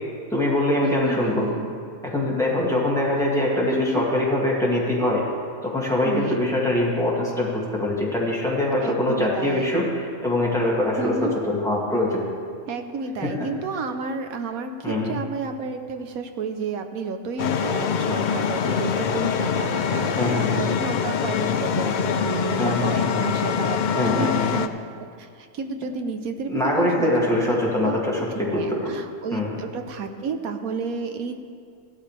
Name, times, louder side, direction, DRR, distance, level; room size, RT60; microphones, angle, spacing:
voice 1, 0.3-1.4 2.0-5.2 5.6-12.2 13.2-13.3 14.8-15.2 20.2-20.6 22.6-23.1 24.0-24.5 26.5-29.0 29.3-29.5, left 1 dB, ahead, -5 dB, 2.3 m, -23 dB
voice 2, 0.8-1.7 3.7-4.1 6.0-6.5 8.8-9.9 11.0-11.4 12.7-24.7 25.2-27.6 27.8-28.0 28.5-31.3, right 4 dB, 90° right, 6 dB, 1.3 m, -31 dB
sound 1, 17.4-24.7, left 7 dB, 85° left, 0.4 m, -24 dB
16.0 x 12.5 x 3.4 m, 2.3 s
omnidirectional pair, 1.4 m